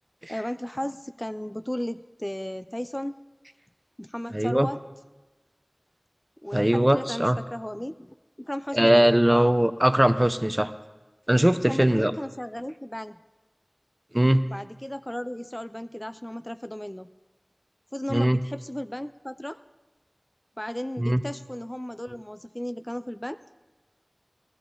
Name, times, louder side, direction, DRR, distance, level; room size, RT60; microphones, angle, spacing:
voice 1, 0.3-3.2 4.0-4.8 6.4-9.5 11.7-13.2 14.5-17.1 17.9-19.6 20.6-23.4, equal, 20° left, 11 dB, 0.4 m, -35 dB
voice 2, 4.3-4.7 6.5-7.4 8.7-10.7 11.3-12.1 14.1-14.4 18.1-18.4 21.0-21.2, right 1 dB, 20° right, 11 dB, 0.6 m, -20 dB
17.5 x 14.5 x 3.9 m, 1.2 s
wide cardioid pair, 40°, 0 cm